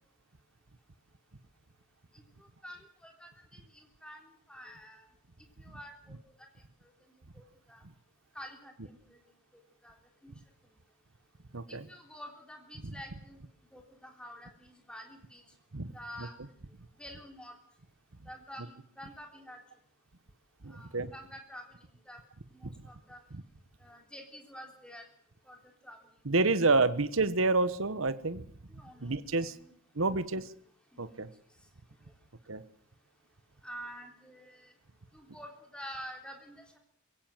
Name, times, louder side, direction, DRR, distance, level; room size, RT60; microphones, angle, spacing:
voice 1, 2.6-5.0 5.6-6.2 7.3-7.8 8.3-9.2 9.8-10.0 10.2-10.3 11.7-13.4 13.7-15.4 15.9-16.3 17.0-17.5 18.3-19.6 20.7-21.6 22.1-22.2 22.5-23.2 23.8-25.1 25.4-25.6 25.8-26.0 28.8-29.7 30.0-30.5 30.9-31.1 33.6-34.7 35.1-36.8, equal, 5° left, 2 dB, 3.6 m, -48 dB
voice 2, 11.5-11.9 15.7-15.9 20.6-21.1 23.3-23.4 26.2-28.4 29.0-29.5 30.0-30.5 31.0-31.3 32.5-32.6, right 3 dB, 65° right, 14 dB, 1.1 m, -28 dB
22.5 x 16.5 x 7.7 m, 0.63 s
head